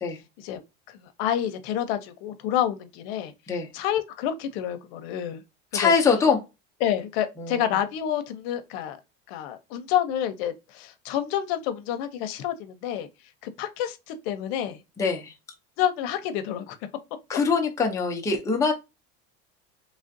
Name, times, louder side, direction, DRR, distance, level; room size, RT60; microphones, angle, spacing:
voice 1, 0.9-3.3 3.7-5.4 5.7-5.9 6.8-9.0 9.3-13.1 13.4-14.8 15.8-16.8, left 10 dB, 80° left, 0.6 m, -28 dB
voice 2, 5.7-6.4 7.4-7.8 15.0-15.3 17.3-18.7, left 5 dB, 10° left, 0.5 m, -23 dB
3.2 x 2.4 x 2.6 m
cardioid pair, 155°, 30 cm